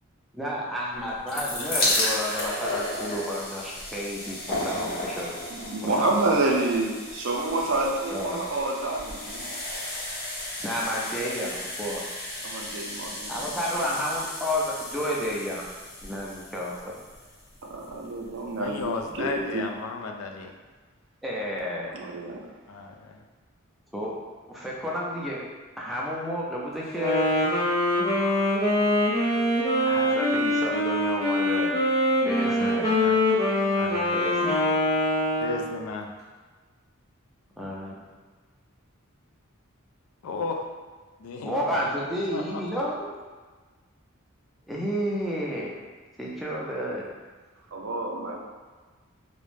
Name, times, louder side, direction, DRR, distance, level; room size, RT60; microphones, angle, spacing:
voice 1, 0.3-5.4 5.8-6.1 8.1-8.4 10.6-12.0 13.3-15.6 16.0-17.0 21.2-21.9 23.9-24.1 24.5-25.4 25.8-27.3 29.8-31.7 32.2-32.9 34.1-34.8 37.6-38.0 41.4-43.1 44.7-45.7 46.2-47.1, equal, ahead, -5 dB, 0.4 m, -31 dB
sound 1, 1.0-18.1 18.8-18.9 19.1-19.2, left 1 dB, 50° left, 0.7 m, -33 dB
voice 2, 5.5-9.5 12.4-13.4 17.6-19.6 21.9-22.5 47.7-48.4, right 2 dB, 60° right, -1 dB, 0.4 m, -28 dB
voice 3, 18.6-20.5 22.7-23.2 32.4-33.2 33.8-34.2 35.4-36.1 40.2-40.6 41.2-42.8, left 4 dB, 85° left, 3 dB, 0.3 m, -34 dB
Wind instrument woodwind instrument, 26.9-35.8, left 1 dB, 15° left, 0.7 m, -24 dB
2.4 x 2.0 x 3.2 m, 1.4 s
head